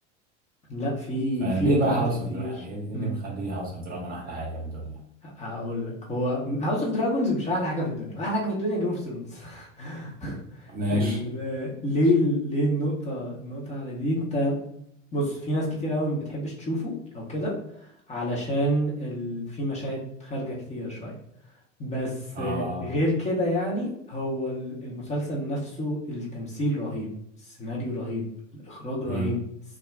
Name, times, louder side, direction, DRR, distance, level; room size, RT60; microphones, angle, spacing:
voice 1, 0.7-2.0 2.3-2.6 2.9-3.2 5.4-14.6 15.1-17.5 18.1-21.2 21.8-27.1 27.4-28.2 28.7-29.4, equal, 20° left, -4 dB, 0.8 m, -28 dB
voice 2, 1.4-5.0 10.7-11.2 22.3-23.0 29.0-29.3, right 1 dB, 25° right, -3 dB, 0.7 m, -29 dB
2.4 x 2.1 x 3.3 m, 0.73 s
figure-of-eight pair, 80°, 37 cm